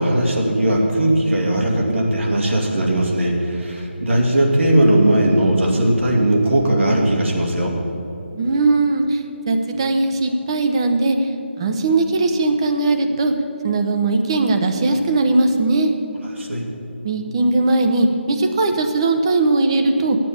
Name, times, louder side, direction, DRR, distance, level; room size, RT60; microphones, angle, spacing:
voice 1, 0.0-7.7 16.4-16.6, right 1 dB, 80° right, -2 dB, 2.6 m, -18 dB
voice 2, 8.3-11.3 11.6-13.3 13.6-15.9 17.0-20.2, right 2 dB, 25° right, 6 dB, 0.8 m, -19 dB
9.6 x 7.6 x 8.6 m, 2.7 s
figure-of-eight pair, 165°, 7 cm